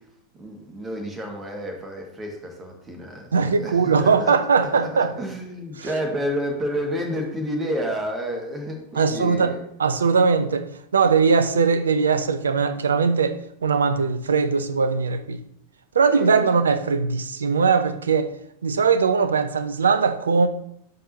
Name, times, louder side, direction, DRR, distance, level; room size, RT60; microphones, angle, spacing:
voice 1, 0.4-4.4 4.7-9.6 16.1-16.5, equal, 20° right, 3 dB, 1.9 m, -30 dB
voice 2, 3.3-5.1 9.0-9.5 9.8-10.7 10.9-13.4 13.6-15.4 15.9-18.3 18.6-20.5, right 5 dB, 70° right, 11 dB, 0.6 m, -20 dB
11.0 x 5.3 x 2.8 m, 0.72 s
figure-of-eight pair, 90°, 0 cm